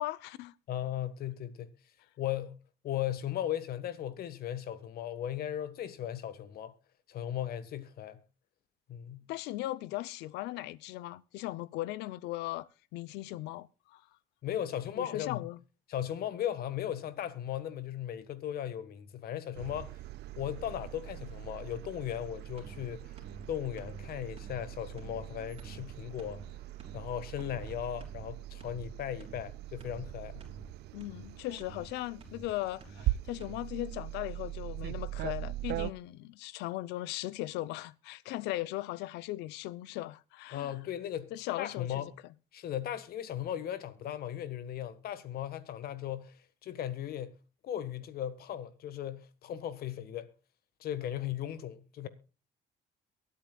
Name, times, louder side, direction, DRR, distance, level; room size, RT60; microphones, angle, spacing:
voice 1, 0.0-0.5 9.3-14.0 15.0-15.6 30.9-40.7 41.3-42.1, left 16 dB, 90° left, 0.6 m, -38 dB
voice 2, 0.7-1.7 2.2-2.6 2.8-6.7 7.1-8.2 8.9-9.2 14.4-15.5 15.9-20.0 20.4-23.1 23.5-26.4 26.9-30.4 40.5-41.3 41.6-42.1 42.5-47.4 47.6-50.3 50.8-52.1, left 11 dB, 65° left, 1.5 m, -37 dB
sound 1, 19.5-35.9, right 16 dB, 80° right, 0.5 m, -41 dB
sound 2, 22.6-22.9 23.2-23.5 23.8-24.1 24.4-24.7 25.0-25.3 25.6-25.9 26.2-26.5 26.8-27.1 27.4-27.7 28.0-28.3 28.6-28.9 29.2-29.5 29.8-30.1 30.4-30.7 31.0-31.3 31.6-31.9 32.2-32.5 32.8-33.1 33.4-33.6, right 3 dB, 35° right, 3.5 m, -50 dB
23.0 x 8.5 x 2.3 m
cardioid pair, 110°, 17 cm